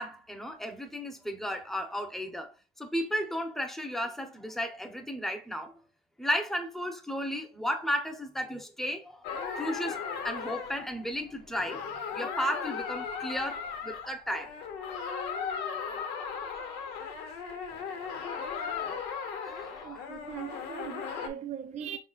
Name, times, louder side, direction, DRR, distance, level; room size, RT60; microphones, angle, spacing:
voice 1, 0.0-2.5 2.8-5.7 6.2-9.3 9.6-14.5 18.1-18.4 19.3-20.1, equal, ahead, 0.8 m, -34 dB
sound 1, 9.2-21.3, left 6 dB, 90° left, 0.9 m, -37 dB
voice 2, 19.8-22.0, right 9 dB, 40° right, 0.5 m, -40 dB
4.8 x 3.8 x 2.4 m
cardioid pair, 110°, 17 cm